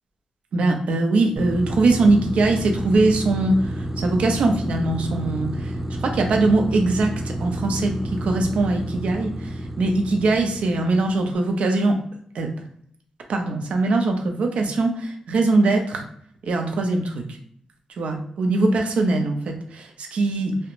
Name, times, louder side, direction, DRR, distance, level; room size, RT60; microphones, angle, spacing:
voice 1, 0.5-5.7 6.0-12.0 12.3-12.5 13.3-16.0 16.4-17.4 18.0-20.6, right 2 dB, 75° right, 3 dB, 0.5 m, -21 dB
sound 1, 1.4-11.2, right 1 dB, 10° right, 0.4 m, -30 dB
2.9 x 2.1 x 2.5 m, 0.64 s
cardioid pair, 85°, 2 cm